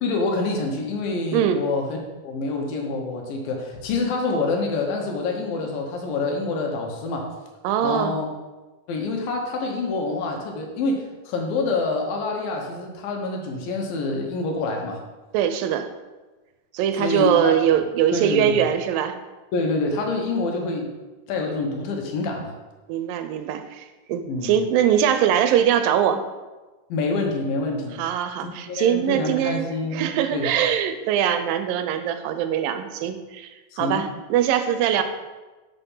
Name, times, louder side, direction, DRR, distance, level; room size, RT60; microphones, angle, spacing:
voice 1, 0.0-2.0 2.2-7.3 7.8-8.3 8.9-15.0 17.0-17.6 18.1-18.7 19.5-20.9 21.3-22.5 24.3-24.5 26.9-28.0 28.4-30.5 33.7-34.0, left 3 dB, 85° left, 1 dB, 2.9 m, -26 dB
voice 2, 1.3-1.6 7.6-8.2 15.3-15.9 16.7-19.2 22.9-26.2 28.0-29.7 29.9-33.5 33.8-35.0, right 9 dB, 85° right, 9 dB, 2.3 m, -22 dB
6.0 x 5.8 x 5.4 m, 1.2 s
omnidirectional pair, 4.0 m